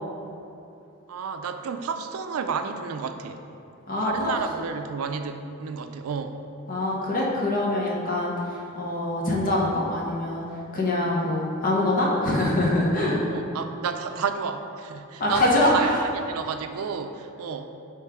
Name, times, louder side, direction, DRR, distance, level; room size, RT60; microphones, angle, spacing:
voice 1, 1.1-3.4 4.0-6.4 13.3-17.7, right 6 dB, 80° right, 7 dB, 0.4 m, -31 dB
voice 2, 3.9-4.3 6.7-10.4 10.7-13.2 15.2-16.0, left 1 dB, 40° left, -3 dB, 1.0 m, -24 dB
8.7 x 3.3 x 3.6 m, 2.7 s
head